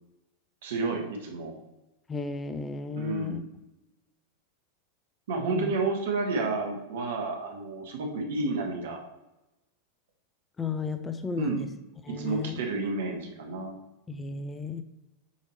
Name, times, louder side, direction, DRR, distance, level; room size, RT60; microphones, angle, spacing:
voice 1, 0.6-1.6 3.0-3.4 5.3-9.0 11.4-11.7 12.1-13.8, right 3 dB, 60° right, 2 dB, 1.4 m, -30 dB
voice 2, 2.1-3.4 5.4-5.7 10.6-11.7 12.0-12.6 14.1-14.8, left 5 dB, 15° left, 9 dB, 0.4 m, -34 dB
8.0 x 4.8 x 3.3 m, 0.98 s
figure-of-eight pair, 90°, 0 cm